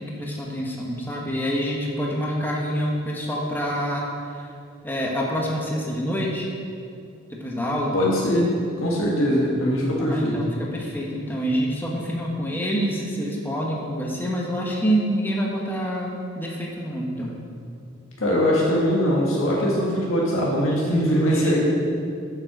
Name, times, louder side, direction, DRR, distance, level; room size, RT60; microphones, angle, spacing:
voice 1, 0.0-4.1 4.3-4.5 4.8-6.5 7.3-7.9 10.0-17.3 21.3-21.6, equal, 10° left, -2 dB, 1.2 m, -27 dB
voice 2, 7.9-10.4 18.2-21.6, equal, 75° left, -4 dB, 1.6 m, -21 dB
7.7 x 7.7 x 6.0 m, 2.4 s
head